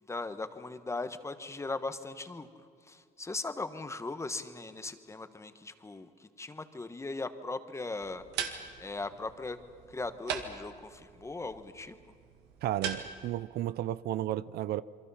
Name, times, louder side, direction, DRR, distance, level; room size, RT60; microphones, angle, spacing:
voice 1, 0.1-2.5 2.8-8.2 8.8-9.6 9.9-12.0, left 3 dB, 15° left, 1.2 m, -39 dB
sound 1, 8.0-13.4, right 7 dB, 85° right, 1.9 m, -41 dB
voice 2, 12.6-14.8, right 13 dB, 70° right, 0.5 m, -33 dB
27.5 x 23.0 x 5.6 m
cardioid pair, 110°, 17 cm